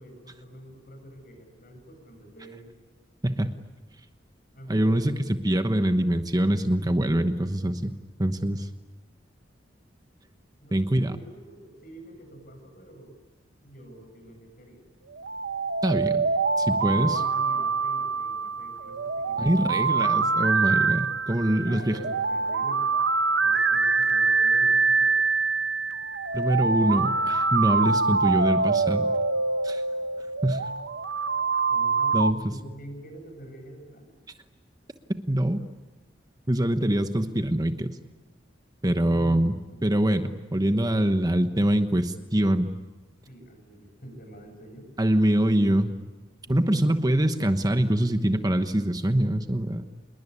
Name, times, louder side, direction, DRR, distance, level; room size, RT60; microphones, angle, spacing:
voice 1, 0.0-2.7 4.5-5.3 10.6-13.1 13.6-14.8 16.8-19.7 21.6-22.8 23.4-25.2 31.7-34.1 39.1-39.8 43.3-44.9 46.4-46.8, right 1 dB, 50° left, 5 dB, 8.0 m, -45 dB
voice 2, 4.7-7.9 8.2-8.7 10.7-11.1 15.8-16.3 16.6-17.2 19.4-22.0 26.3-29.1 29.6-29.8 30.4-30.6 32.1-32.4 35.3-35.6 36.5-38.0 38.8-39.5 39.8-42.7 45.0-45.9 46.5-49.8, right 1 dB, 20° right, 8 dB, 1.1 m, -24 dB
sound 1, 15.2-32.3, right 4 dB, 70° right, 1.0 m, -25 dB
27.0 x 22.0 x 9.9 m, 1.2 s
head